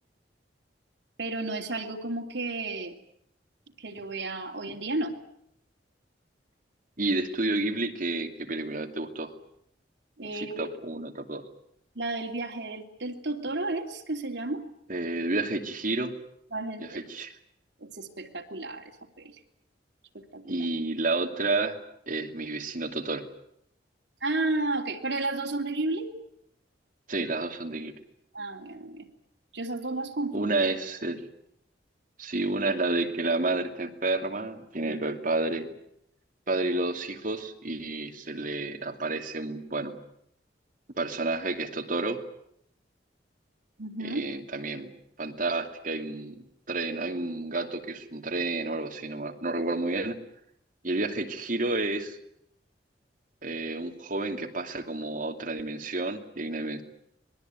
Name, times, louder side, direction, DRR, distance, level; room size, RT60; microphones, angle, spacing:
voice 1, 1.2-2.9 3.8-5.1 10.2-10.7 11.9-14.7 16.5-17.0 17.8-18.9 19.2-19.4 20.1-20.7 24.2-26.1 28.3-29.1 29.5-30.5 34.8-35.0 43.8-44.4, right 2 dB, 75° right, 1 dB, 3.0 m, -32 dB
voice 2, 7.0-9.3 10.3-11.4 14.9-16.1 16.8-17.3 20.4-21.8 22.1-23.2 27.1-27.9 30.3-31.2 32.2-35.8 36.5-40.0 40.9-42.2 44.0-44.9 45.2-50.2 50.8-52.2 53.4-56.8, right 2 dB, 50° right, 4 dB, 2.7 m, -30 dB
26.0 x 20.5 x 9.2 m, 0.74 s
head